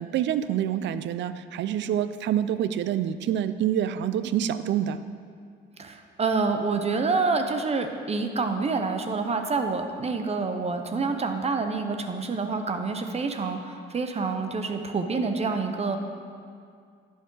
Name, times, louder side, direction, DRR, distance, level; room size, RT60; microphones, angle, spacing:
voice 1, 0.0-5.0, right 10 dB, 65° right, 13 dB, 0.4 m, -27 dB
voice 2, 5.8-16.0, right 4 dB, 30° right, 6 dB, 0.7 m, -27 dB
10.5 x 5.2 x 3.8 m, 2.2 s
cardioid pair, 90°, 20 cm